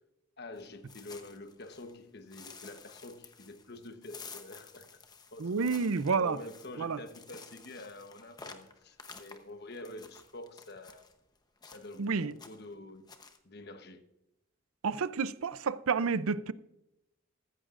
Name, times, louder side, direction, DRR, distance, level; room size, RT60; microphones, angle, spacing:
voice 1, 0.4-4.9 5.3-5.7 6.1-11.1 11.6-13.1 13.4-14.0, left 2 dB, 50° left, 1.1 m, -47 dB
sound 1, 0.6-2.0 2.3-11.1 11.6-12.1 12.3-12.7 13.1-13.4, left 4 dB, 20° left, 0.9 m, -52 dB
voice 2, 5.4-6.4 6.8-7.0 12.0-12.3 14.8-16.5, right 5 dB, 80° right, 0.5 m, -30 dB
15.0 x 14.0 x 2.5 m
head